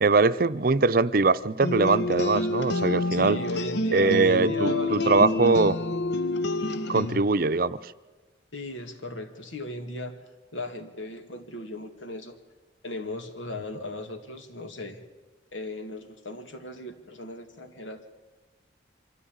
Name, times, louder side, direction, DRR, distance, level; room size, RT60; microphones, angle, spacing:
voice 1, 0.0-3.4 3.9-5.8 6.9-7.9, right 3 dB, 50° right, 12 dB, 0.6 m, -22 dB
sound 1, 1.6-7.2, left 2 dB, 60° left, 0.8 m, -28 dB
voice 2, 3.1-5.5 8.5-10.2 10.5-12.4 12.8-15.0 15.5-18.0, left 2 dB, 90° left, 7 dB, 2.4 m, -37 dB
25.0 x 14.0 x 8.8 m, 1.3 s
head